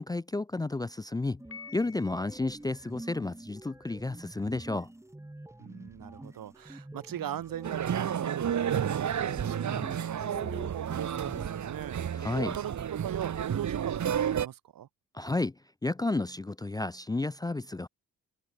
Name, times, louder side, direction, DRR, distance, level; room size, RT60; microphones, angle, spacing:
voice 1, 0.0-1.4 1.7-4.9 12.1-12.6 15.1-15.5 15.8-17.9, left 2 dB, 10° left, 0.4 m, -32 dB
sound 1, 1.4-11.7, right 1 dB, 10° right, 2.3 m, -47 dB
Piano, 1.5-2.6, left 6 dB, 45° left, 3.2 m, -48 dB
voice 2, 5.6-12.3 12.5-14.9, right 11 dB, 90° right, 6.8 m, -40 dB
sound 2, 7.6-14.5, right 9 dB, 60° right, 2.1 m, -31 dB
cardioid pair, 115°, 33 cm